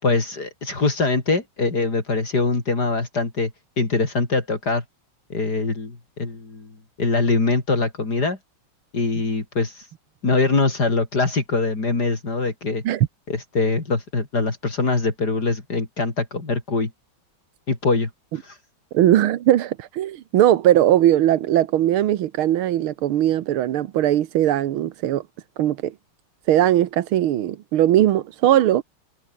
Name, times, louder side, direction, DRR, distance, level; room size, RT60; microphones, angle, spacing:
voice 1, 0.0-3.5 3.8-4.8 5.3-6.7 7.0-8.4 8.9-9.9 10.2-12.8 13.3-16.9 17.7-18.6, left 3 dB, 50° left, 4.4 m, -23 dB
voice 2, 18.9-25.2 25.6-25.9 26.5-28.8, right 12 dB, 90° right, 1.9 m, -19 dB
omnidirectional pair, 2.3 m